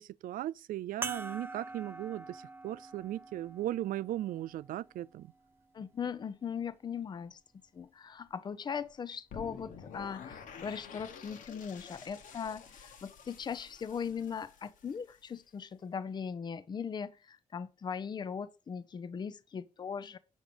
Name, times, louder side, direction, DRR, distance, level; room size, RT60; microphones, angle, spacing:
voice 1, 0.0-5.3, right 13 dB, 85° right, 0.4 m, -37 dB
sound 1, 1.0-5.8 6.6-6.7 8.8-9.0, right 4 dB, 15° right, 0.4 m, -45 dB
voice 2, 5.7-7.4 7.7-20.2, left 6 dB, 30° left, 0.6 m, -39 dB
sound 2, 9.3-15.3, left 6 dB, 75° left, 1.3 m, -50 dB
7.3 x 6.2 x 5.1 m
wide cardioid pair, 150°, 14 cm